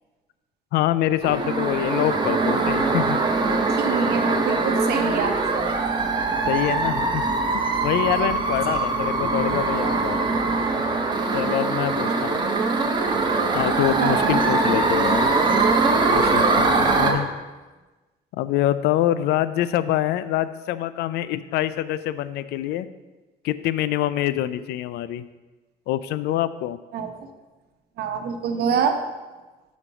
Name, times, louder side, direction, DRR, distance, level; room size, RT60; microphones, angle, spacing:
voice 1, 0.7-3.2 6.5-7.3 7.8-10.4 11.3-12.4 13.5-15.3 16.1-17.3 18.4-22.9 23.4-25.2 25.9-26.8, left 12 dB, 75° left, 14 dB, 0.4 m, -25 dB
sound 1, 1.2-17.1, right 3 dB, 25° right, 1.1 m, -22 dB
voice 2, 3.8-6.0 8.1-8.8 14.0-14.4 16.2-16.4 17.1-17.2 26.9-27.1 28.0-29.0, right 6 dB, 70° right, 5 dB, 1.0 m, -26 dB
6.8 x 5.1 x 6.1 m, 1.2 s
cardioid pair, 110°, 17 cm